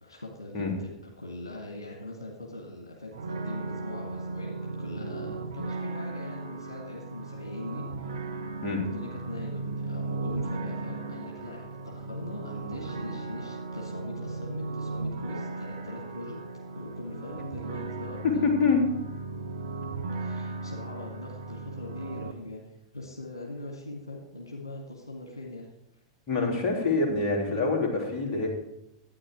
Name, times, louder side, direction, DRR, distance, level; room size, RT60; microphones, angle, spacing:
voice 1, 0.0-8.3 8.8-16.4 16.7-18.5 20.1-22.6 22.9-25.7, left 2 dB, 80° left, 0 dB, 2.0 m, -41 dB
sound 1, 3.1-22.3, right 3 dB, 70° right, 1.0 m, -36 dB
voice 2, 18.4-18.8 26.3-28.5, left 4 dB, 35° left, 0 dB, 3.3 m, -25 dB
12.5 x 9.3 x 4.7 m, 0.82 s
figure-of-eight pair, 90°, 2 cm